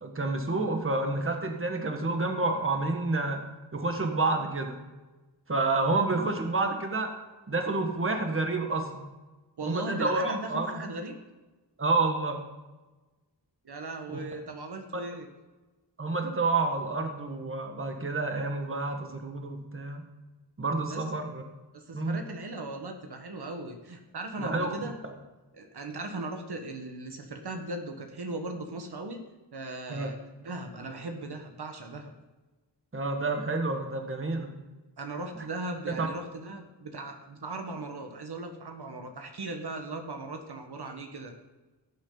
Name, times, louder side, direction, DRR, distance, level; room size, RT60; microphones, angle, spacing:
voice 1, 0.0-3.4 3.7-4.8 5.5-7.1 7.5-9.0 9.6-10.8 11.8-12.4 14.1-14.2 14.9-15.0 16.0-20.0 20.6-21.4 21.9-22.2 24.4-24.7 29.9-30.1 32.9-34.5 35.3-35.4 36.0-36.1, right 3 dB, 30° right, 4 dB, 1.5 m, -29 dB
voice 2, 9.6-11.1 13.6-15.3 20.9-21.0 21.7-24.9 25.5-32.1 35.0-41.3, right 2 dB, 65° right, 4 dB, 1.4 m, -38 dB
18.0 x 7.4 x 3.9 m, 1.2 s
wide cardioid pair, 115°, 42 cm